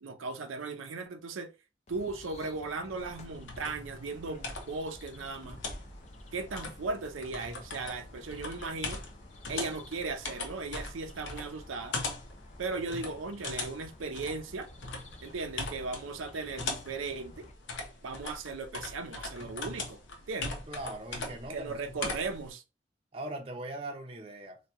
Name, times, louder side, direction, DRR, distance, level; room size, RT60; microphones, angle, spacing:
voice 1, 0.0-1.5 1.9-5.6 6.3-9.0 9.5-12.0 12.6-14.7 15.2-17.5 18.0-20.0 20.3-20.5 21.5-22.6, right 3 dB, 85° right, 0.5 m, -37 dB
sound 1, 1.9-17.5, left 1 dB, 35° left, 0.4 m, -52 dB
sound 2, 3.0-22.5, left 3 dB, 70° left, 0.7 m, -41 dB
voice 2, 20.4-22.3 23.1-24.6, right 1 dB, 30° right, 0.6 m, -41 dB
2.8 x 2.2 x 3.5 m
head